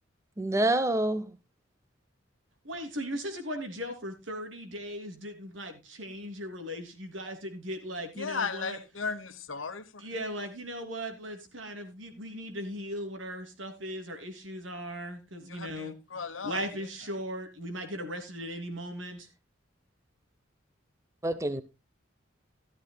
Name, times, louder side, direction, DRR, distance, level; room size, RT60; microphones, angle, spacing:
voice 1, 0.4-1.3 21.2-21.6, right 1 dB, 15° right, 0.7 m, -27 dB
voice 2, 2.6-8.8 10.0-15.9 16.4-19.3, equal, 75° right, 3.0 m, -38 dB
voice 3, 8.2-10.0 15.4-16.6, left 5 dB, 85° left, 1.2 m, -36 dB
13.5 x 13.5 x 2.2 m
head